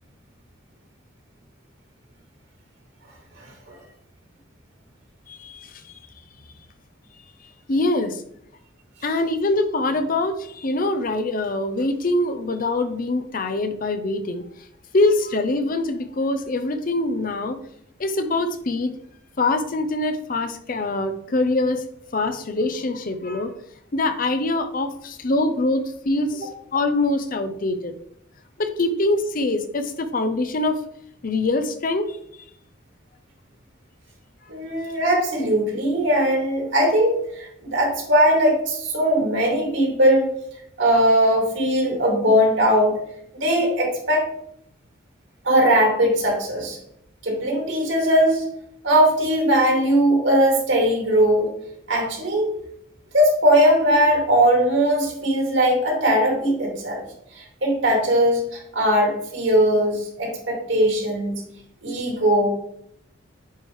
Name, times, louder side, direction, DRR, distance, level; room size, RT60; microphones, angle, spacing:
voice 1, 7.7-8.1 9.0-14.4 14.9-17.6 18.0-18.9 19.4-21.8 22.1-23.5 23.9-27.9 28.6-30.8 31.2-32.1, left 2 dB, 40° left, 9 dB, 0.6 m, -24 dB
voice 2, 34.5-40.3 40.8-43.0 43.4-44.3 45.4-46.8 47.2-48.4 48.8-51.5 51.9-52.5 53.1-57.0 57.3-61.4 61.8-62.5, equal, 60° right, -1 dB, 2.5 m, -19 dB
9.1 x 4.7 x 3.1 m, 0.73 s
head